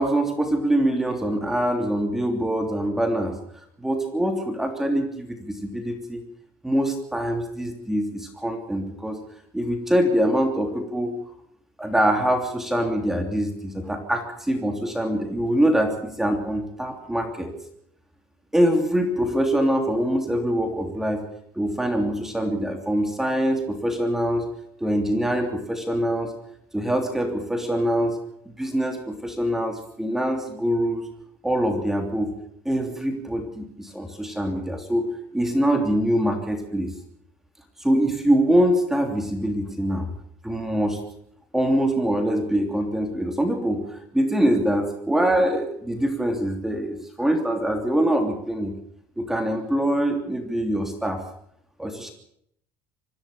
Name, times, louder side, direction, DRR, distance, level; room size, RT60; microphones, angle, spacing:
voice 1, 0.0-3.4 3.8-6.2 6.6-9.2 9.5-11.2 11.8-17.5 18.5-21.2 21.5-24.5 24.8-26.3 26.7-28.2 28.6-31.1 31.4-32.3 32.6-36.9 37.8-40.1 40.4-41.0 41.5-48.7 49.2-51.2 51.8-52.1, right 1 dB, 5° right, 4 dB, 3.2 m, -24 dB
25.0 x 16.0 x 6.9 m, 0.72 s
cardioid pair, 130°, 8 cm